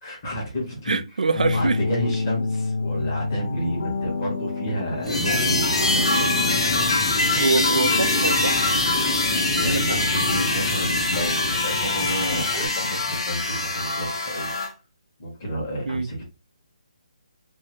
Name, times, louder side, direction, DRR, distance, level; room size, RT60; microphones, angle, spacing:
voice 1, 0.0-1.0 1.4-6.3 9.5-14.6 15.2-16.2, equal, 25° left, 1.1 m, -30 dB
voice 2, 0.9-1.8 7.4-8.6 9.6-10.0 15.8-16.1, right 4 dB, 90° right, 0.4 m, -24 dB
sound 1, 1.3-6.9, left 3 dB, 75° left, 0.9 m, -28 dB
sound 2, 5.0-12.7, left 1 dB, 10° left, 0.6 m, -29 dB
sound 3, 5.1-14.7, left 2 dB, 40° left, 0.8 m, -24 dB
2.7 x 2.4 x 3.0 m
hypercardioid pair, 175°, 4 cm